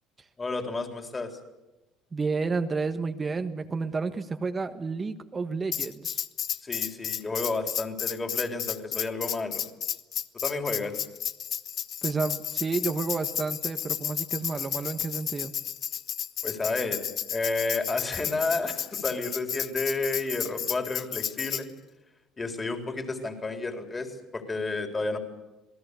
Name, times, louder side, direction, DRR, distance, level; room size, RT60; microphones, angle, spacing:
voice 1, 0.4-1.4 6.6-9.6 10.4-11.0 16.4-17.0 17.3-21.7 22.4-25.2, left 3 dB, 20° left, 5 dB, 3.9 m, -31 dB
voice 2, 2.1-6.2 12.0-15.5, right 4 dB, 20° right, 8 dB, 1.3 m, -31 dB
Tambourine, 5.7-21.6, left 9 dB, 45° left, 1.0 m, -32 dB
27.5 x 18.5 x 8.2 m, 1.0 s
cardioid pair, 120°, 0 cm